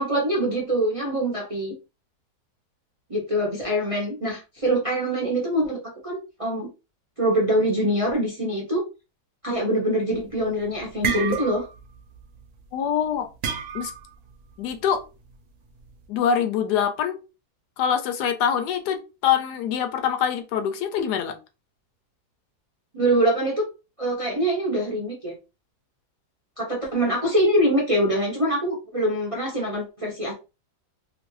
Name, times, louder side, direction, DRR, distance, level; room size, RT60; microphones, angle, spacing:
voice 1, 0.0-1.7 3.1-5.8 6.0-6.7 7.2-8.8 9.4-11.7 22.9-23.7 24.0-25.3 26.6-30.3, right 1 dB, 40° right, -2 dB, 0.5 m, -24 dB
sound 1, 10.2-10.5 10.8-11.9 12.1-12.4 13.4-14.1, right 6 dB, 65° right, 0.9 m, -29 dB
voice 2, 12.7-13.3 13.7-13.9 14.6-15.0 16.1-17.2 17.8-21.3, left 8 dB, 85° left, 7 dB, 1.2 m, -24 dB
2.9 x 2.4 x 3.0 m, 0.29 s
omnidirectional pair, 1.7 m